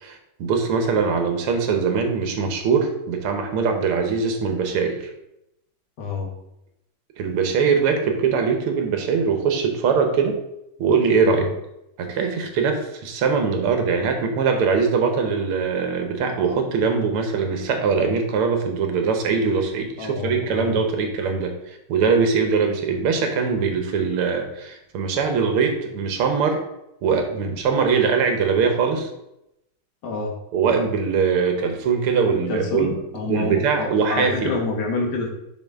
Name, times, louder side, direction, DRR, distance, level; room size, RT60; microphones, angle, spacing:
voice 1, 0.0-5.1 7.2-10.4 10.8-11.5 12.0-21.5 21.9-26.6 27.0-29.1 30.5-33.0 33.3-34.5, right 5 dB, 85° right, 5 dB, 1.9 m, -22 dB
voice 2, 6.0-6.3 11.2-11.5 20.0-21.1 30.0-30.3 32.3-35.3, left 3 dB, 55° left, 1 dB, 1.7 m, -28 dB
6.7 x 5.7 x 3.6 m, 0.84 s
omnidirectional pair, 2.4 m